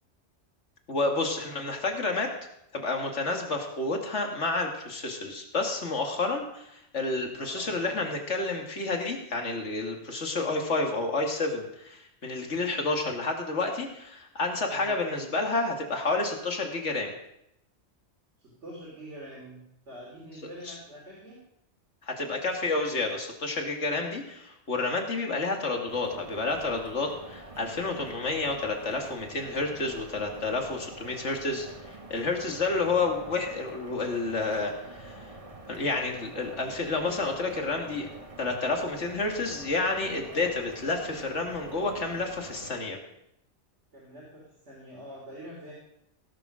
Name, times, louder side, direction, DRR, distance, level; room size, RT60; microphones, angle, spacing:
voice 1, 0.9-2.3 2.7-17.1 22.0-31.7 32.1-35.2 35.7-38.1 38.4-43.0, left 3 dB, 80° left, 2 dB, 2.2 m, -30 dB
voice 2, 7.4-8.0 14.7-15.0 18.4-21.4 30.7-31.3 40.2-40.5 43.9-45.7, equal, 75° right, -4 dB, 3.4 m, -46 dB
sound 1, 25.9-42.8, right 2 dB, 30° right, 1.3 m, -46 dB
17.5 x 7.0 x 6.1 m, 0.80 s
omnidirectional pair, 1.2 m